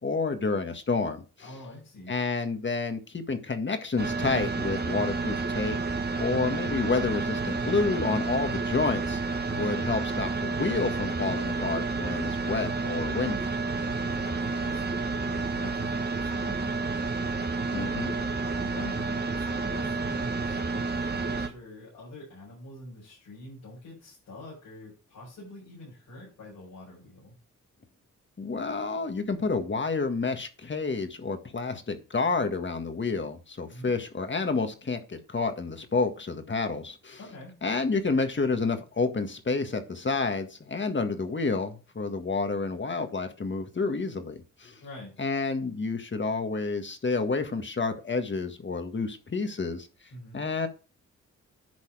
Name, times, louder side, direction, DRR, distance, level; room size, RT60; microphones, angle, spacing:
voice 1, 0.0-1.2 2.1-5.8 6.2-9.2 9.5-13.5 17.7-18.1 28.4-37.2 37.6-44.8 45.2-49.9 50.3-50.7, left 4 dB, 35° left, 7 dB, 1.7 m, -29 dB
voice 2, 1.4-2.2 8.5-8.7 13.8-17.4 17.8-27.3 33.7-33.9 37.2-37.6 44.8-45.2 50.1-50.4, left 1 dB, 90° left, -8 dB, 5.4 m, -45 dB
sound 1, 4.0-21.5, right 3 dB, 30° right, 1.5 m, -30 dB
11.0 x 4.1 x 4.9 m, 0.34 s
cardioid pair, 55°, 33 cm